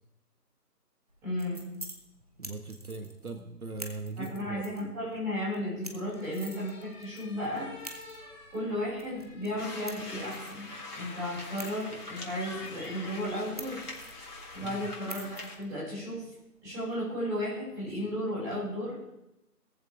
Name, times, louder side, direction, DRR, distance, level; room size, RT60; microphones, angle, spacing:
sound 1, 1.1-18.0, right 1 dB, 25° right, 0.9 m, -50 dB
voice 1, 1.2-1.7 4.2-7.7 8.5-13.8 14.5-16.2 16.6-19.0, left 1 dB, 5° right, -12 dB, 6.9 m, -34 dB
voice 2, 2.4-4.7 14.6-14.8, right 3 dB, 60° right, 6 dB, 1.4 m, -40 dB
sound 2, 6.1-14.6, left 2 dB, 15° left, 3.7 m, -53 dB
sound 3, 9.6-15.6, left 2 dB, 65° left, 4.0 m, -43 dB
18.0 x 14.5 x 3.7 m, 0.91 s
figure-of-eight pair, 165°, 48 cm